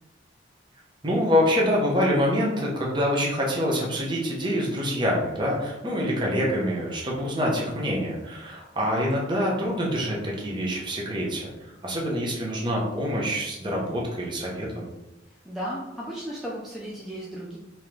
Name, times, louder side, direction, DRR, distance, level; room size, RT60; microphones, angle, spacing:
voice 1, 1.0-14.9, equal, 25° right, -3 dB, 0.8 m, -26 dB
voice 2, 15.4-17.6, equal, ahead, -7 dB, 0.5 m, -35 dB
3.7 x 2.9 x 3.2 m, 0.97 s
head